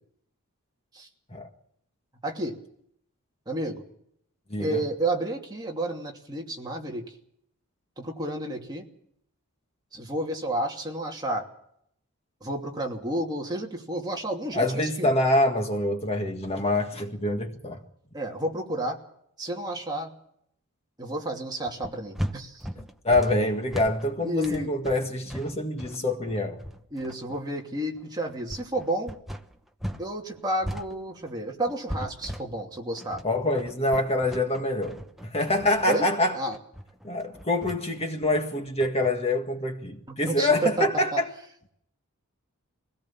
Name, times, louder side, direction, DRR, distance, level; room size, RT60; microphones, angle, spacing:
voice 1, 2.2-2.6 3.5-3.8 4.6-7.0 8.0-8.8 9.9-11.5 12.4-15.1 18.1-19.0 19.4-20.1 21.0-22.7 24.2-24.7 26.9-29.1 30.0-33.2 35.9-36.1 36.3-36.6 40.1-41.2, right 1 dB, 20° right, 2.7 m, -31 dB
voice 2, 4.5-4.8 14.5-17.8 23.0-26.6 33.2-36.4 37.0-41.3, left 1 dB, 25° left, 1.8 m, -25 dB
sound 1, 21.8-30.1 30.3-39.1, equal, ahead, 1.0 m, -38 dB
23.5 x 17.5 x 7.4 m
head